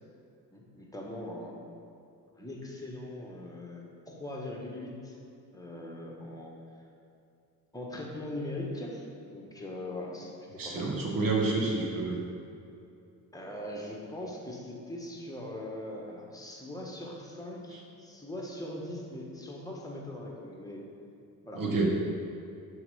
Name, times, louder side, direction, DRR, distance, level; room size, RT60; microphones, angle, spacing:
voice 1, 0.5-1.6 2.4-5.2 5.5-6.5 7.7-9.1 9.3-10.9 13.3-20.9 21.4-21.6, left 1 dB, 10° left, -2 dB, 1.3 m, -40 dB
voice 2, 10.6-12.2 21.5-21.9, right 3 dB, 55° right, -1 dB, 1.4 m, -28 dB
5.8 x 3.6 x 5.5 m, 2.6 s
supercardioid pair, 65°, 40 cm